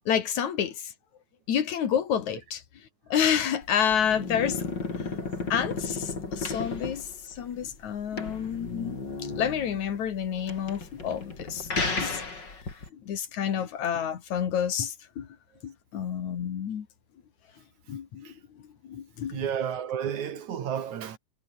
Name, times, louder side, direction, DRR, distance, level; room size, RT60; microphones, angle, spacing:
voice 1, 0.1-0.9 1.5-2.6 3.1-4.6 5.5-7.1 7.4-9.0 9.3-11.7 12.0-12.2 13.1-15.3 15.6-16.9 17.9-18.3 18.9-19.4, left 8 dB, 75° left, 3.4 m, -29 dB
sound 1, 3.6-12.9, left 3 dB, 35° left, 4.8 m, -34 dB
voice 2, 19.3-21.2, right 9 dB, 75° right, 3.4 m, -32 dB
omnidirectional pair, 3.4 m